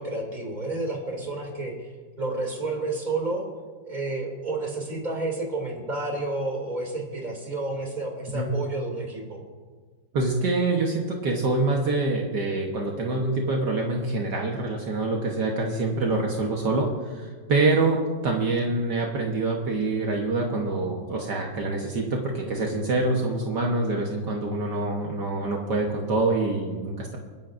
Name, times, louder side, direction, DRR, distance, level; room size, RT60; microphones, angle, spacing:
voice 1, 0.0-1.7 2.2-3.4 3.8-9.4, right 2 dB, 25° right, 0 dB, 2.9 m, -30 dB
voice 2, 10.1-27.2, right 2 dB, 65° right, 0 dB, 1.8 m, -25 dB
29.5 x 10.5 x 2.6 m, 1.5 s
omnidirectional pair, 2.1 m